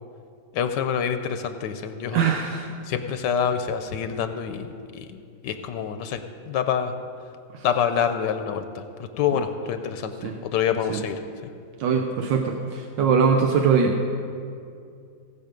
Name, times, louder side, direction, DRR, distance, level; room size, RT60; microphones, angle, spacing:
voice 1, 0.5-2.2 2.9-6.9 7.6-11.2 13.0-13.1, left 7 dB, 80° left, 8 dB, 1.3 m, -27 dB
voice 2, 2.1-2.7 10.2-10.3 10.9-11.0 11.8-14.0, right 6 dB, 85° right, 3 dB, 1.4 m, -22 dB
17.0 x 6.6 x 5.1 m, 2.4 s
omnidirectional pair, 1.9 m